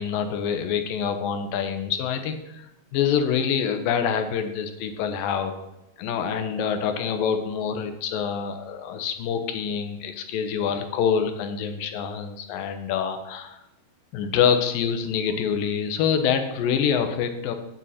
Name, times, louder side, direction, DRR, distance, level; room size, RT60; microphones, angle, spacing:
voice 1, 0.0-5.5 6.0-13.6 14.1-17.6, left 7 dB, 75° left, 7 dB, 2.4 m, -26 dB
8.8 x 8.7 x 4.2 m, 0.89 s
omnidirectional pair, 4.2 m